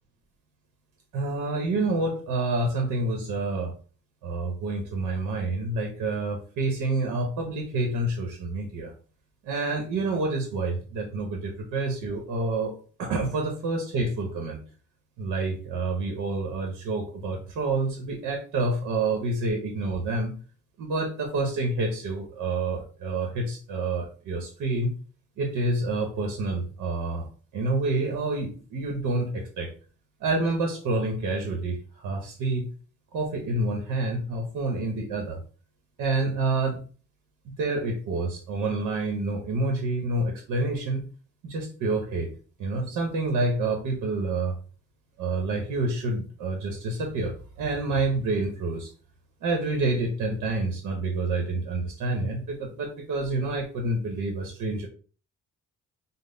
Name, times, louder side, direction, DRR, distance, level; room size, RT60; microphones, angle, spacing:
voice 1, 1.1-3.7 4.2-8.9 9.4-12.7 13.0-14.6 15.2-20.3 20.8-24.9 25.4-27.3 27.5-29.7 30.2-32.7 33.1-35.4 36.0-36.8 37.4-41.0 41.4-42.3 42.6-44.6 45.2-48.9 49.4-54.9, right 2 dB, 80° right, 2 dB, 0.8 m, -28 dB
3.8 x 2.0 x 3.8 m, 0.40 s
cardioid pair, 90°, 30 cm